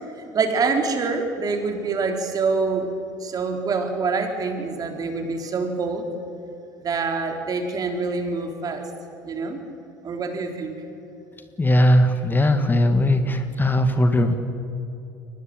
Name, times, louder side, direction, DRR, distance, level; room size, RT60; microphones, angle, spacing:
voice 1, 0.3-2.9 3.2-6.1 6.8-8.8 9.2-9.6 10.0-10.8, right 4 dB, 40° right, 4 dB, 3.9 m, -25 dB
voice 2, 11.6-14.3, left 1 dB, 20° left, 8 dB, 1.9 m, -19 dB
23.0 x 18.5 x 9.0 m, 2.8 s
hypercardioid pair, 70°, 10 cm